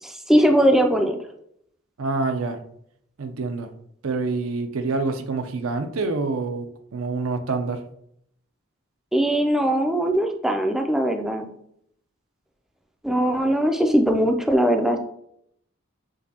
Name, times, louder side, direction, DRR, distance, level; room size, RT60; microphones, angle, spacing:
voice 1, 0.0-1.2 9.1-11.5 13.0-15.0, equal, ahead, 4 dB, 0.3 m, -20 dB
voice 2, 2.0-2.6 3.2-3.7 4.0-7.8, right 3 dB, 85° right, 7 dB, 0.6 m, -27 dB
6.3 x 2.7 x 2.8 m, 0.70 s
head